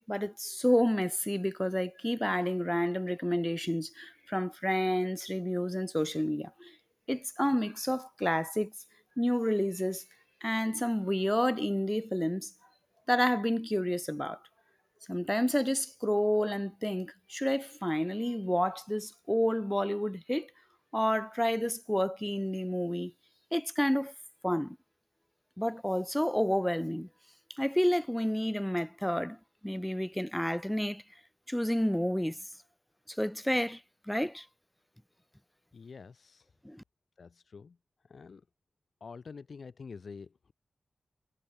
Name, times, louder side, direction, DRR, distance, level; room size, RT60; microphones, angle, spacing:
voice 1, 0.1-6.7 7.1-8.7 9.2-10.0 10.4-12.5 13.1-14.4 15.1-20.5 20.9-23.1 23.5-24.1 24.4-24.8 25.6-27.1 27.5-29.4 29.6-31.0 31.5-32.4 33.1-33.8 34.1-34.5 36.6-36.8, equal, 5° left, 0.4 m, -30 dB
voice 2, 35.7-36.5 37.2-37.8 38.0-38.4 39.0-40.5, left 5 dB, 70° left, 1.6 m, -47 dB
cardioid pair, 65°, 0 cm